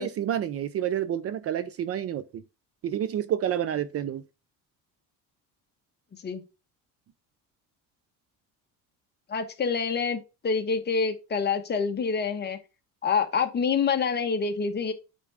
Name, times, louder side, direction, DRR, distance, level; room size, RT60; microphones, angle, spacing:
voice 1, 0.0-2.4 2.8-4.2, right 10 dB, 40° right, 0.5 m, -29 dB
voice 2, 6.1-6.4 9.3-12.6 13.0-14.9, left 5 dB, 30° left, 1.1 m, -27 dB
8.4 x 3.7 x 3.4 m
cardioid pair, 140°, 35 cm